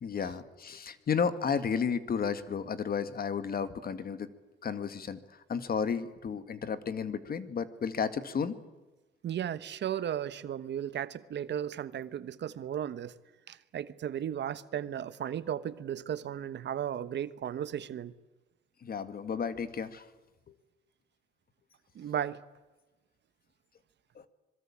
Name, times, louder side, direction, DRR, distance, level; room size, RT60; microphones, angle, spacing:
voice 1, 0.0-4.3 4.6-5.2 5.5-8.6 18.8-20.0 24.2-24.3, left 6 dB, 50° left, 1.9 m, -32 dB
voice 2, 9.2-13.2 13.5-18.1 21.9-22.4, right 10 dB, 60° right, 1.2 m, -35 dB
25.5 x 22.5 x 8.7 m
cardioid pair, 90°, 20 cm